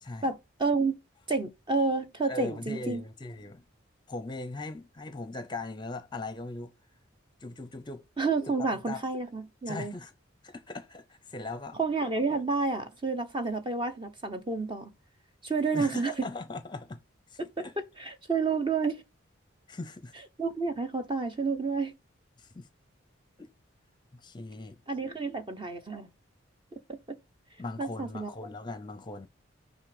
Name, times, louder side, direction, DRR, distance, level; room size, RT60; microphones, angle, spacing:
voice 1, 0.2-0.9 1.3-3.0 8.2-9.9 11.8-14.9 15.4-16.2 17.6-17.7 18.0-19.0 20.4-21.9 24.9-26.1 26.9-27.2 27.8-28.3, right 4 dB, 25° right, 1.0 m, -30 dB
voice 2, 2.3-3.6 4.1-6.7 7.4-8.0 8.6-9.0 9.7-10.1 10.4-11.8 12.3-12.4 15.7-17.0 17.3-17.8 19.7-20.1 22.4-22.7 23.4-23.5 24.1-24.8 27.6-29.3, left 2 dB, 20° left, 0.7 m, -39 dB
6.4 x 4.1 x 4.9 m
head